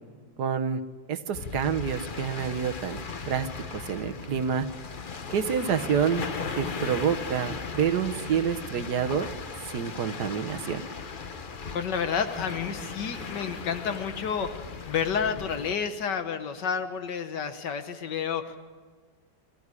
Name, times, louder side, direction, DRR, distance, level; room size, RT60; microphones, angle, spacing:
voice 1, 0.4-0.8 1.1-3.0 3.3-3.5 3.7-4.7 5.3-6.2 6.6-9.3 9.7-10.8, right 7 dB, 70° right, 8 dB, 1.5 m, -28 dB
sound 1, 1.3-15.7, left 5 dB, 40° left, 0.8 m, -37 dB
voice 2, 11.7-18.6, left 6 dB, 75° left, 9 dB, 1.7 m, -30 dB
23.0 x 15.0 x 9.8 m, 1.5 s
omnidirectional pair, 1.9 m